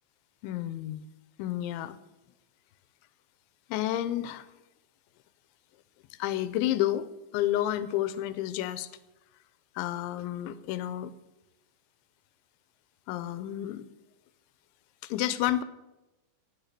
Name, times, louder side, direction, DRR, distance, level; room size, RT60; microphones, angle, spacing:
voice 1, 0.4-1.1 1.4-2.0 3.7-4.5 6.2-7.1 7.3-8.9 9.8-11.1 13.1-13.8 15.0-15.6, left 13 dB, 85° left, 14 dB, 3.0 m, -30 dB
16.5 x 8.8 x 6.6 m, 0.99 s
omnidirectional pair, 5.4 m